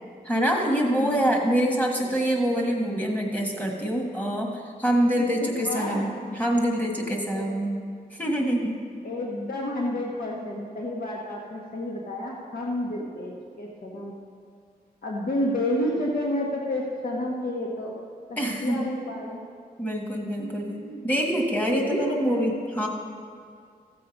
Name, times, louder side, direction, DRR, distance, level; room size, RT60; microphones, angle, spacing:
voice 1, 0.2-7.8 8.1-8.8 18.4-18.9 19.8-20.7 21.0-22.9, equal, 10° left, 0 dB, 1.5 m, -25 dB
voice 2, 0.8-1.3 5.2-6.4 7.3-7.6 9.0-14.2 15.0-17.9 18.3-19.4 20.4-21.0 21.7-22.4, left 1 dB, 65° left, -3 dB, 1.2 m, -30 dB
14.0 x 7.7 x 5.2 m, 2.2 s
wide cardioid pair, 135°, 16 cm